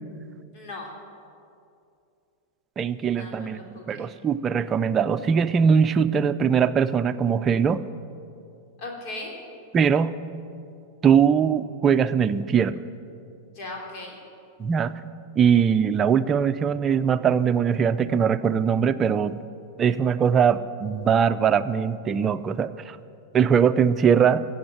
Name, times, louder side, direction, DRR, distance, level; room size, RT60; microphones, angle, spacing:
voice 1, 0.5-1.0 3.0-4.1 8.8-9.4 13.5-14.2, left 2 dB, 50° left, -1 dB, 3.2 m, -38 dB
voice 2, 2.8-7.8 9.7-10.1 11.0-12.8 14.6-14.9 15.4-19.4 19.8-23.0 23.3-24.4, right 7 dB, 30° right, 11 dB, 0.6 m, -21 dB
15.0 x 8.0 x 9.1 m, 2.5 s
hypercardioid pair, 105°, 0 cm